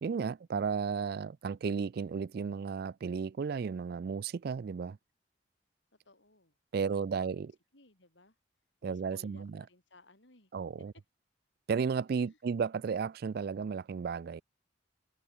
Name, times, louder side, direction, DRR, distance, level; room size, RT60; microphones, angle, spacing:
voice 1, 0.0-5.0 6.7-7.5 8.8-9.6 10.5-10.9 11.7-14.4, right 5 dB, 55° right, 0.3 m, -34 dB
voice 2, 6.0-6.5 7.0-7.5 7.7-8.4 8.8-10.5 10.8-10.9 12.1-12.4, left 2 dB, 70° left, 5.1 m, -60 dB
head